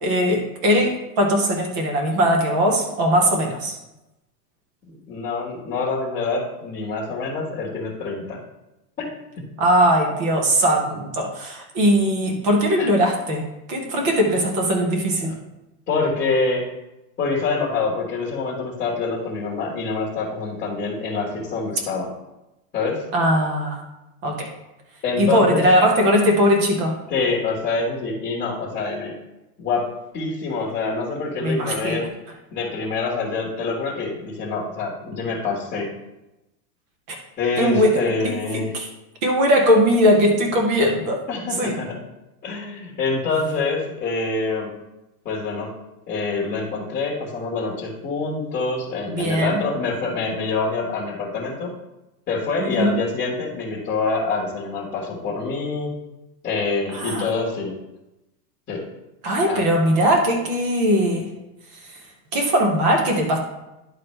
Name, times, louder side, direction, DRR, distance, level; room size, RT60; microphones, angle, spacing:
voice 1, 0.0-3.7 9.6-15.4 23.1-23.8 24.2-24.5 25.2-27.0 31.4-32.1 37.1-37.2 37.6-38.3 38.7-38.9 39.2-41.2 41.6-41.8 49.1-49.6 52.6-52.9 56.9-57.3 59.2-61.3 62.3-63.4, equal, 15° right, 2 dB, 0.3 m, -20 dB
voice 2, 4.9-8.4 9.0-9.1 12.8-12.9 15.2-15.3 15.9-16.6 17.2-22.1 22.7-23.0 25.0-25.6 27.1-29.1 29.6-29.9 30.1-32.1 32.5-35.9 37.4-38.7 41.3-42.0 42.4-44.7 45.2-45.7 46.1-51.7 52.3-55.9 56.4-57.7 58.7-58.8 59.5-59.6, left 4 dB, 20° left, -4 dB, 1.4 m, -26 dB
11.0 x 4.3 x 3.2 m, 0.97 s
supercardioid pair, 155°, 46 cm